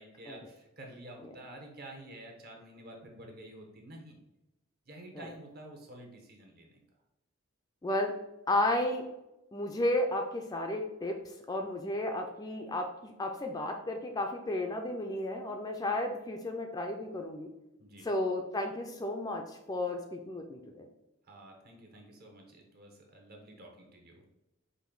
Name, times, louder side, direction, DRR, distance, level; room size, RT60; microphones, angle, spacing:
voice 1, 0.0-4.2 4.9-6.8 17.8-18.1 21.2-24.3, right 1 dB, 45° right, 1 dB, 1.0 m, -50 dB
voice 2, 7.8-8.1 8.5-9.0 9.5-17.5 18.0-20.8, left 1 dB, 20° left, 3 dB, 0.4 m, -33 dB
5.2 x 2.6 x 3.8 m, 0.93 s
head